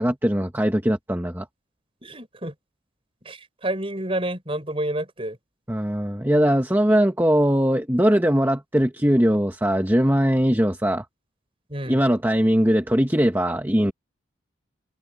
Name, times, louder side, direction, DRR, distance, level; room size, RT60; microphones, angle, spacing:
voice 1, 0.0-1.5 5.7-11.0 11.9-13.9, equal, 10° right, 1.4 m, -20 dB
voice 2, 2.0-2.5 3.2-5.4 11.7-12.0, right 1 dB, 30° right, 4.9 m, -29 dB
head